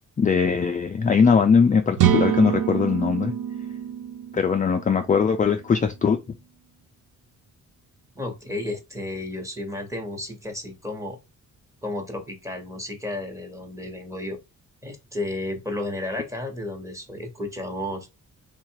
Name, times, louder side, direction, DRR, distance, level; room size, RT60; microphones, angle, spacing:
voice 1, 0.2-3.3 4.3-6.2, left 6 dB, 25° left, 0.3 m, -20 dB
sound 1, 2.0-5.7, right 10 dB, 85° right, 0.5 m, -26 dB
voice 2, 8.1-11.2 11.8-14.4 14.8-18.1, left 1 dB, 10° right, 1.1 m, -32 dB
3.6 x 2.4 x 4.5 m
wide cardioid pair, 155°, 31 cm